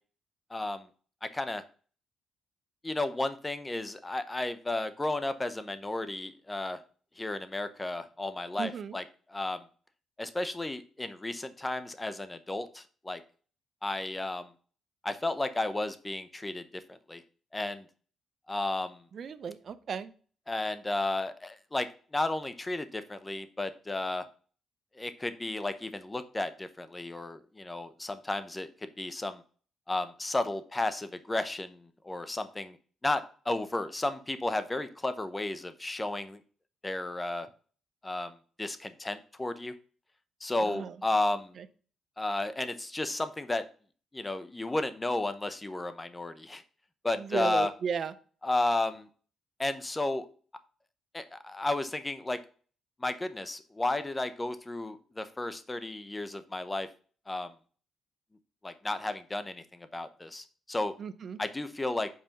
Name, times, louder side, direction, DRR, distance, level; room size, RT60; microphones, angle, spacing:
voice 1, 0.5-0.9 1.2-1.6 2.8-6.8 7.2-9.6 10.2-13.2 13.8-14.5 15.0-16.6 16.9-17.2 17.5-17.9 18.5-19.0 20.5-24.3 25.0-29.4 29.9-32.8 33.0-36.4 36.8-37.5 38.0-39.7 40.4-41.6 42.2-43.6 44.1-46.6 47.0-47.7 48.4-49.1 49.6-50.3 51.1-52.4 53.0-56.9 57.3-57.5 58.6-60.9 61.4-62.1, left 2 dB, 15° left, 11 dB, 0.8 m, -33 dB
voice 2, 8.6-9.0 19.1-20.1 40.6-41.0 41.6-41.7 47.2-48.1 61.0-61.4, right 6 dB, 55° right, 13 dB, 0.6 m, -35 dB
5.6 x 4.3 x 5.3 m, 0.41 s
cardioid pair, 90°, 0 cm